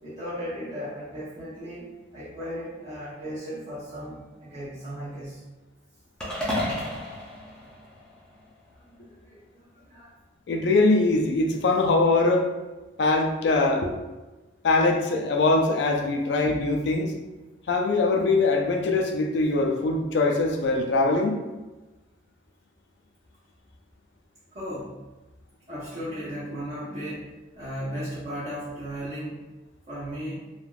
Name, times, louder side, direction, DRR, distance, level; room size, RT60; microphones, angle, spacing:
voice 1, 0.0-5.4 9.0-9.4 9.9-10.1 16.4-16.9 24.5-24.9 25.7-27.3 27.6-29.4 29.9-30.4, equal, 35° right, -12 dB, 0.8 m, -36 dB
sound 1, 6.2-8.5, left 1 dB, 5° left, 0.5 m, -32 dB
voice 2, 10.5-12.5 13.0-13.9 14.6-17.1 17.7-21.4, left 3 dB, 60° left, 2 dB, 0.3 m, -22 dB
3.3 x 2.2 x 2.3 m, 1.1 s
head